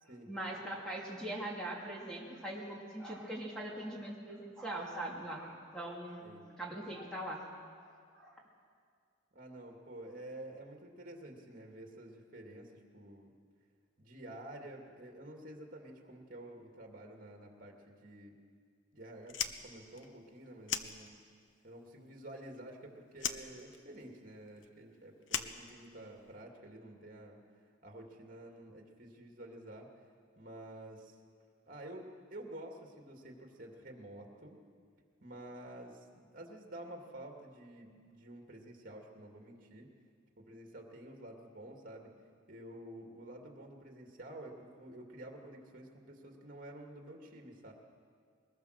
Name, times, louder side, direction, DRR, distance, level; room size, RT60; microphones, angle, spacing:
voice 1, 0.3-6.3 6.6-7.4 7.8-8.4, right 1 dB, 5° left, -3 dB, 2.8 m, -41 dB
voice 2, 9.3-13.3 14.0-18.3 18.9-21.2 21.6-27.4 27.8-29.9 30.4-31.2 31.7-34.6 35.2-39.9 40.4-42.1 42.5-47.7, right 1 dB, 45° right, 2 dB, 2.4 m, -50 dB
Fire, 19.2-21.5 21.8-22.8 23.1-26.3, left 8 dB, 70° left, 0.9 m, -40 dB
22.0 x 20.5 x 6.6 m, 2.1 s
head